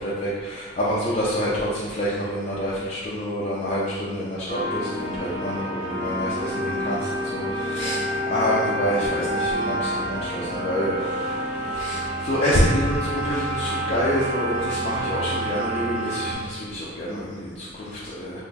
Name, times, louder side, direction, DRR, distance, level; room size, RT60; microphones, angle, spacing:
voice 1, 0.0-18.4, equal, 35° left, -7 dB, 0.4 m, -27 dB
sound 1, 4.5-16.3, equal, 40° right, 0.5 m, -28 dB
2.9 x 2.3 x 4.0 m, 1.5 s
head